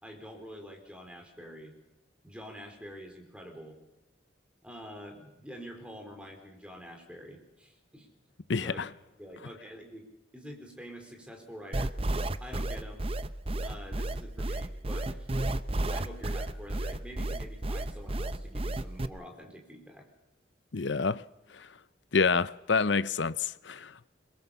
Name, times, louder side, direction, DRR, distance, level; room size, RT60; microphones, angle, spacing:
voice 1, 0.0-1.7 2.2-3.8 4.6-8.1 8.6-8.8 9.2-10.1 10.3-11.9 12.4-13.1 13.6-15.6 15.9-20.1, equal, 5° right, 4.3 m, -46 dB
voice 2, 8.5-8.9 20.7-21.2 21.5-21.7 22.1-24.1, left 4 dB, 70° left, 0.7 m, -28 dB
sound 1, 11.7-19.1, right 1 dB, 30° right, 0.7 m, -31 dB
22.5 x 22.0 x 7.1 m
head